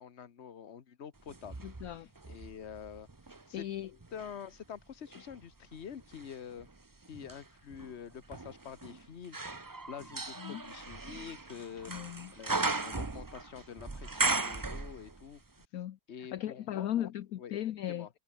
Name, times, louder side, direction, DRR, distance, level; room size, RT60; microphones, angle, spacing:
voice 1, 0.0-1.6 1.9-3.1 3.5-3.6 4.1-6.7 7.1-9.5 9.9-15.4 16.1-17.1 17.4-17.5 17.9-18.1, left 8 dB, 40° left, 1.4 m, -47 dB
sound 1, 1.3-3.5 4.0-15.4 15.6-15.7, right 3 dB, 20° right, 0.5 m, -38 dB
voice 2, 1.6-2.1 3.5-3.9 10.4-10.6 11.9-12.3 15.7-18.1, left 12 dB, 60° left, 1.1 m, -37 dB
omnidirectional pair, 1.9 m